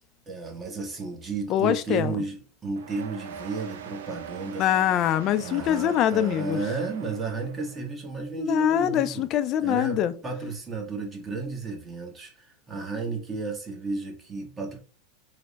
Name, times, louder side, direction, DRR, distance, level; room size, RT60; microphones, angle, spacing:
voice 1, 0.3-4.7 5.4-9.3 9.6-14.8, right 3 dB, 25° right, 1.0 m, -33 dB
voice 2, 1.5-2.2 4.6-6.6 8.4-10.1, left 11 dB, 45° left, 0.4 m, -24 dB
sound 1, 2.8-7.9, right 7 dB, 85° right, 0.5 m, -41 dB
3.3 x 2.0 x 3.9 m
hypercardioid pair, 110°, 0 cm